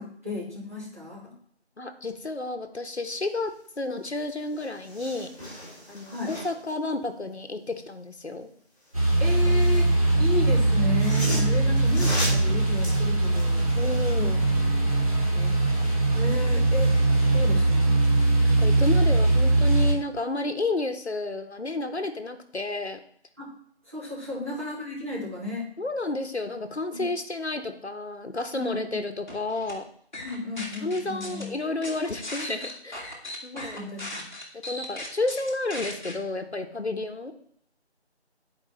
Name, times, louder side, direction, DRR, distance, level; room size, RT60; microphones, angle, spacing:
voice 1, 0.0-1.3 6.1-6.3 9.2-13.7 14.1-14.3 15.3-15.5 16.1-16.9 17.3-18.0 23.4-23.5 23.9-25.7 26.9-27.0 28.5-29.0 30.2-31.5 33.5-34.3, left 3 dB, 15° right, -9 dB, 1.5 m, -34 dB
voice 2, 1.8-5.3 5.9-8.5 13.7-14.4 18.4-23.0 24.3-24.5 25.8-29.8 30.8-33.2 33.4-34.1 34.7-37.3, left 2 dB, 70° left, 7 dB, 1.2 m, -31 dB
sound 1, 4.1-4.2 4.5-6.7 8.9-9.9 10.7-14.1 14.5-14.6, equal, 15° left, 3.6 m, -36 dB
sound 2, 8.9-19.9, right 2 dB, 30° right, 1.4 m, -21 dB
sound 3, 29.3-29.7 30.1-31.4 31.8-36.1, left 1 dB, 40° left, 1.8 m, -37 dB
9.4 x 4.8 x 4.1 m, 0.64 s
figure-of-eight pair, 165°, 33 cm